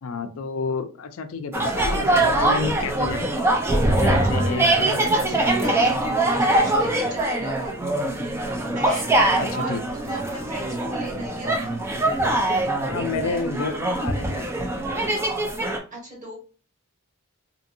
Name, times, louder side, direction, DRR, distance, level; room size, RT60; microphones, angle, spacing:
voice 1, 0.0-3.3 4.0-5.1 9.4-9.8 12.8-14.5, left 4 dB, 70° left, 10 dB, 0.4 m, -30 dB
sound 1, 1.5-15.8, right 1 dB, 10° right, 0.4 m, -23 dB
voice 2, 4.2-4.7 5.1-11.5 15.9-16.3, right 1 dB, 35° right, -3 dB, 1.2 m, -36 dB
2.7 x 2.6 x 2.6 m, 0.38 s
head